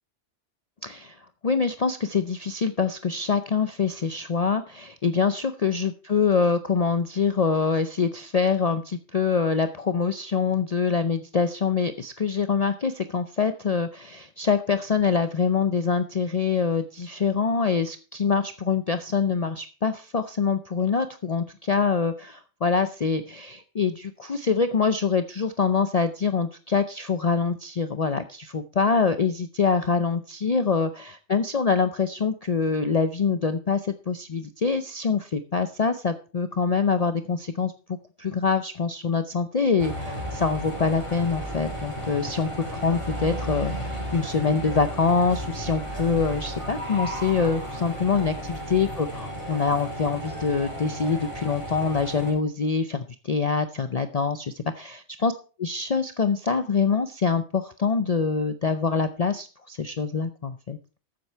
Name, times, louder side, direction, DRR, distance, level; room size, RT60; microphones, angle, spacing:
voice 1, 0.8-55.3 55.6-60.8, left 5 dB, 40° left, 9 dB, 0.6 m, -25 dB
sound 1, 39.8-52.3, equal, 25° left, 4.4 m, -34 dB
13.5 x 7.8 x 4.5 m, 0.35 s
omnidirectional pair, 1.2 m